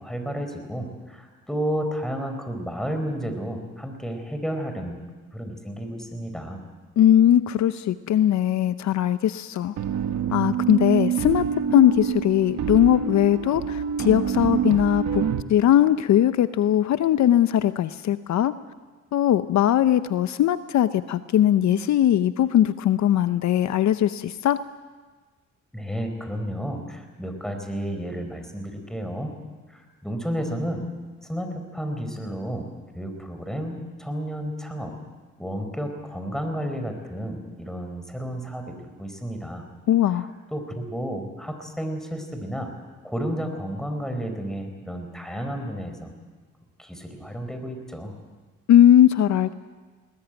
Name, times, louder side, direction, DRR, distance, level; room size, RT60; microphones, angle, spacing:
voice 1, 0.0-5.0 5.3-6.6 25.7-29.3 29.7-30.9 31.2-32.7 32.9-34.9 35.4-39.6 40.1-40.3 40.5-42.7 43.0-46.1 46.8-48.1, equal, ahead, 6 dB, 4.5 m, -32 dB
voice 2, 7.0-9.7 10.3-11.4 11.7-18.5 19.1-24.6 39.9-40.3 48.7-49.5, left 11 dB, 65° left, 13 dB, 0.7 m, -20 dB
sound 1, 9.8-15.4, right 8 dB, 65° right, 1.4 m, -26 dB
21.0 x 19.5 x 9.1 m, 1.4 s
cardioid pair, 90°, 30 cm